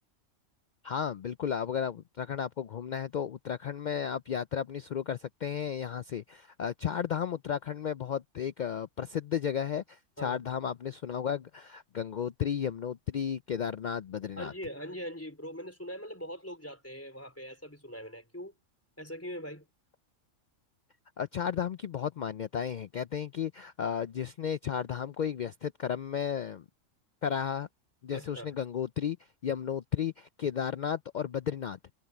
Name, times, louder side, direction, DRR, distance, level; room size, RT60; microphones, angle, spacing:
voice 1, 0.8-14.5 21.2-26.6 27.2-27.7 28.0-29.2 29.4-31.8, left 8 dB, 80° left, 0.4 m, -33 dB
voice 2, 14.4-18.5 19.0-19.7 28.1-28.5, equal, 10° left, 4.0 m, -41 dB
omnidirectional pair, 1.3 m